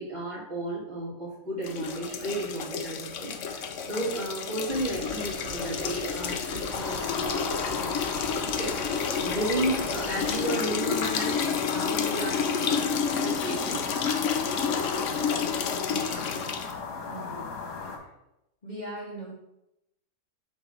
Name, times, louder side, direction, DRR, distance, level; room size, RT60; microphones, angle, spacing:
voice 1, 0.0-7.9 8.4-13.9 16.1-16.3, right 1 dB, 30° right, -6 dB, 1.8 m, -34 dB
sound 1, 1.6-16.7, left 6 dB, 65° left, 0.8 m, -30 dB
sound 2, 4.7-10.4, equal, 50° right, 1.8 m, -43 dB
sound 3, 6.7-18.0, left 4 dB, 80° left, 1.6 m, -36 dB
voice 2, 15.8-16.2 17.1-17.5 18.6-19.3, right 1 dB, 30° left, -6 dB, 1.3 m, -39 dB
6.0 x 3.6 x 4.7 m, 0.86 s
omnidirectional pair, 1.7 m